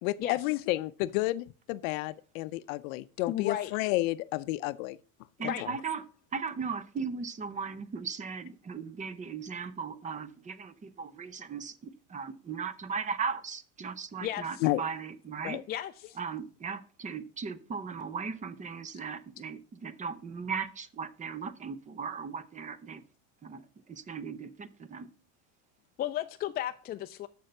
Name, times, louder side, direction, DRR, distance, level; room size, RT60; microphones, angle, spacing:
voice 1, 0.0-5.0 5.4-5.7 14.6-14.8 15.4-15.6, left 18 dB, 80° left, 0.5 m, -31 dB
voice 2, 3.3-3.7 5.4-5.7 14.2-14.6 15.7-16.2 26.0-27.3, left 12 dB, 25° left, 0.3 m, -34 dB
voice 3, 5.4-6.0 6.3-11.8 12.1-15.6 16.2-23.0 23.4-23.6 23.9-25.1, right 5 dB, 20° right, 0.6 m, -37 dB
7.0 x 6.4 x 6.5 m
supercardioid pair, 130°, 39 cm